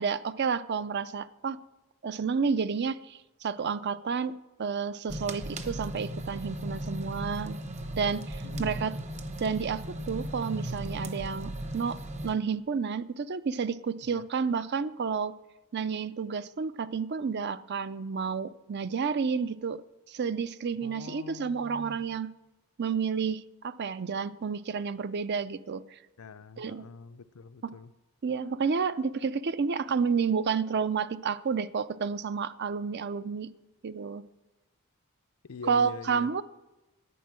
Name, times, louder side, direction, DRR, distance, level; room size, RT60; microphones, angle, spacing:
voice 1, 0.0-1.6 2.0-7.6 8.0-8.9 9.4-12.0 12.2-15.3 15.7-19.8 20.1-22.3 22.8-26.0 26.6-26.8 27.6-27.7 28.2-33.5 33.8-34.2 35.7-36.4, right 5 dB, 50° right, 0.5 m, -30 dB
sound 1, 5.1-12.4, right 1 dB, 30° right, 1.0 m, -37 dB
voice 2, 8.4-8.8 14.0-14.3 20.8-22.2 26.2-27.9 35.4-36.3, left 4 dB, 80° left, 0.6 m, -44 dB
11.0 x 9.4 x 7.5 m
head